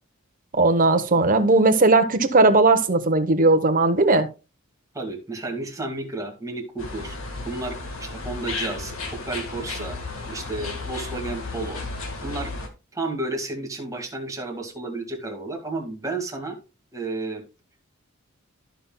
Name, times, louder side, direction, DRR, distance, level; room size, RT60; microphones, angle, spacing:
voice 1, 0.5-4.3, right 2 dB, 40° right, 1.0 m, -18 dB
voice 2, 4.9-7.2 7.5-11.8 12.2-12.5 12.9-16.6 16.9-17.4, right 2 dB, 15° right, 1.9 m, -32 dB
sound 1, 6.8-12.7, left 3 dB, 80° left, 1.7 m, -33 dB
13.5 x 5.7 x 2.3 m
head